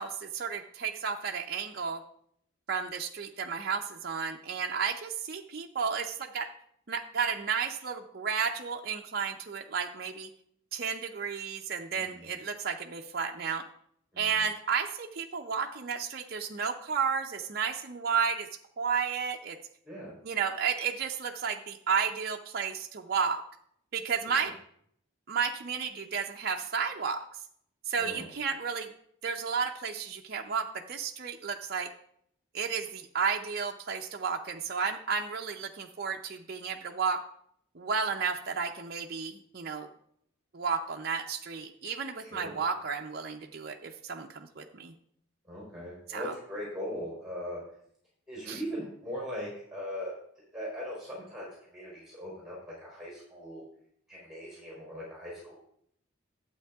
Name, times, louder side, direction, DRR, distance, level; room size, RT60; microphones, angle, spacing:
voice 1, 0.0-2.0 2.7-6.5 6.9-10.3 10.7-13.6 14.2-18.5 18.8-19.6 20.2-23.4 23.9-24.5 25.3-27.3 27.9-28.9 29.2-31.9 32.5-37.2 37.8-39.9 40.5-44.9 46.1-46.3 48.5-48.6, right 6 dB, 45° right, 2 dB, 0.5 m, -32 dB
voice 2, 11.9-12.2 14.1-14.4 19.8-20.1 28.0-28.3 42.2-42.6 45.5-47.6 48.3-53.6 54.1-55.5, equal, 5° right, -5 dB, 3.7 m, -40 dB
12.0 x 8.0 x 3.5 m, 0.68 s
head